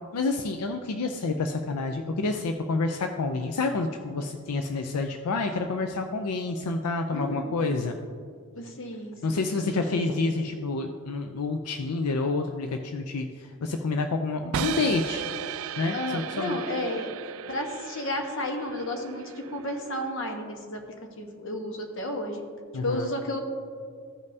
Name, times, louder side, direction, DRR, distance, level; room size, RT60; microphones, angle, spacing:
voice 1, 0.1-8.0 9.2-15.2 15.8-16.6 22.7-23.1, left 3 dB, 90° left, 5 dB, 0.5 m, -28 dB
voice 2, 7.1-7.6 8.6-10.2 15.9-17.1 17.5-20.8 21.2-22.4 22.8-23.4, left 1 dB, 60° left, 2 dB, 1.1 m, -32 dB
sound 1, 14.5-20.5, right 8 dB, 60° right, 0.3 m, -36 dB
14.5 x 5.3 x 2.7 m, 2.1 s
head